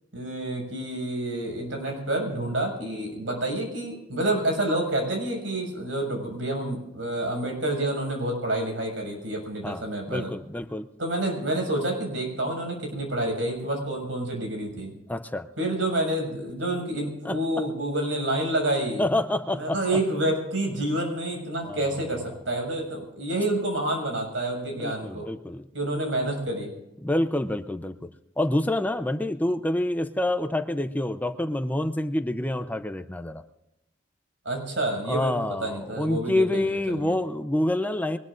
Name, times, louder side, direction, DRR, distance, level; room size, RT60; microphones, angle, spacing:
voice 1, 0.1-10.3 11.0-14.9 15.6-19.0 19.6-25.3 25.7-26.7 34.4-35.3 35.6-37.2, right 1 dB, 85° right, 2 dB, 6.4 m, -28 dB
voice 2, 10.1-10.9 15.1-15.5 17.2-17.4 19.0-20.0 21.6-21.9 24.8-25.7 27.0-28.1 28.4-33.4 35.1-38.2, left 1 dB, 10° left, 9 dB, 0.6 m, -27 dB
23.0 x 19.5 x 2.6 m, 0.91 s
head